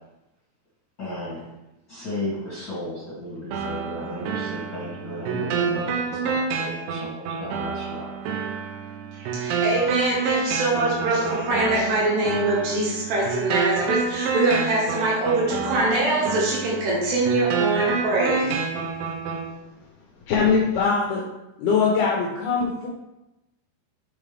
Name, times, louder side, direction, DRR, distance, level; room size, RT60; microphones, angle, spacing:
voice 1, 1.0-1.5 1.9-8.1, left 1 dB, 40° left, -9 dB, 1.8 m, -34 dB
sound 1, 3.5-19.5, right 5 dB, 90° right, 3.1 m, -28 dB
voice 2, 9.4-18.6, right 2 dB, 70° right, -4 dB, 3.5 m, -23 dB
voice 3, 20.3-21.2 21.6-22.9, left 5 dB, 75° left, -2 dB, 2.4 m, -21 dB
7.2 x 5.3 x 3.4 m, 0.94 s
omnidirectional pair, 5.3 m